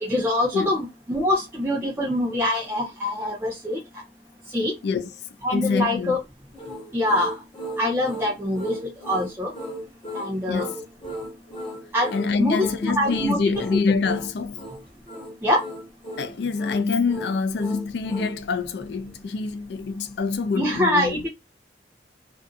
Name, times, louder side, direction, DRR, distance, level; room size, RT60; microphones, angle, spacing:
voice 1, 0.0-3.8 4.5-4.7 5.4-6.2 6.9-7.4 7.8-9.5 10.1-10.7 11.9-12.1 12.4-13.4 13.7-13.8 15.4-15.6 20.5-21.3, left 1 dB, 15° right, 0.6 m, -24 dB
voice 2, 5.5-6.2 10.5-10.7 12.1-14.6 16.2-21.2, left 4 dB, 70° left, 0.4 m, -25 dB
sound 1, 6.5-18.4, equal, 30° left, 1.1 m, -36 dB
2.5 x 2.4 x 2.3 m
head